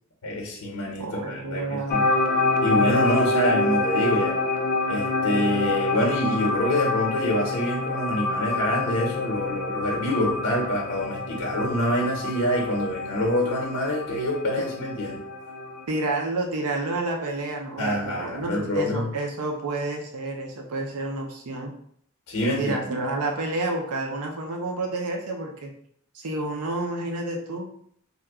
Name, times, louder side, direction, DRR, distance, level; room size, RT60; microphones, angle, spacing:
voice 1, 0.2-2.0 2.6-4.3 4.9-15.2 17.8-19.1 22.3-22.9, left 1 dB, 65° left, -2 dB, 0.9 m, -26 dB
voice 2, 1.0-2.1 15.9-21.7 22.6-25.7 26.1-27.7, right 2 dB, 80° right, 2 dB, 0.5 m, -29 dB
sound 1, 1.9-15.9, left 2 dB, 45° left, 0.4 m, -27 dB
2.9 x 2.2 x 3.5 m, 0.66 s
head